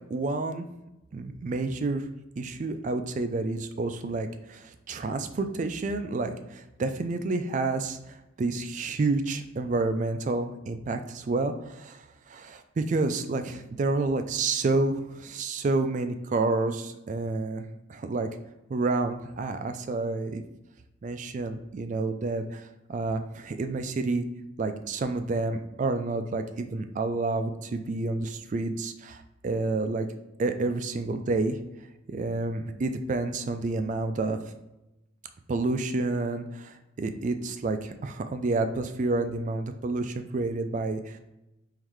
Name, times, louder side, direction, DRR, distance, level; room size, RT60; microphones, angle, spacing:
voice 1, 0.1-0.7 1.1-2.0 2.4-17.6 17.9-18.3 18.7-20.4 21.0-24.3 24.6-30.1 30.4-31.6 32.1-34.4 35.5-41.2, right 3 dB, 40° right, 8 dB, 0.3 m, -29 dB
3.8 x 3.1 x 3.1 m, 0.94 s
head